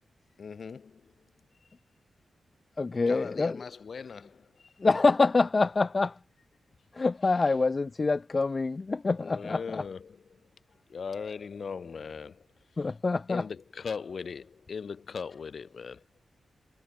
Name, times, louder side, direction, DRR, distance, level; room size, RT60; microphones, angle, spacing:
voice 1, 0.4-1.1 3.1-4.7 9.2-10.2 10.9-12.5 13.3-16.0, left 5 dB, 65° left, 5.2 m, -39 dB
voice 2, 2.8-3.6 4.8-6.2 6.9-9.8 12.8-13.4, left 3 dB, 45° left, 1.2 m, -26 dB
cardioid pair, 45°, 0 cm